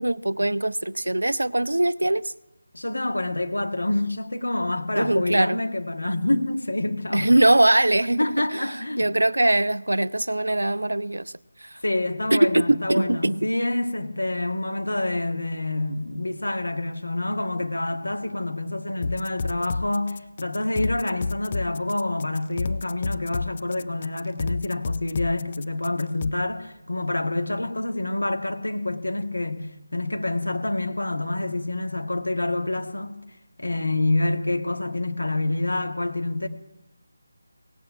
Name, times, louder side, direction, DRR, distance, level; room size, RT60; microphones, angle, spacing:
voice 1, 0.0-2.3 4.9-5.6 7.1-11.3 11.6-11.8 12.3-13.5, right 1 dB, 75° right, 0.5 m, -22 dB
voice 2, 2.7-7.3 8.2-9.1 11.8-29.7 29.9-33.2 33.6-36.5, left 2 dB, 75° left, 1.9 m, -27 dB
sound 1, 19.0-26.3, left 4 dB, 30° left, 0.5 m, -30 dB
17.5 x 8.5 x 8.7 m
figure-of-eight pair, 160°, 0 cm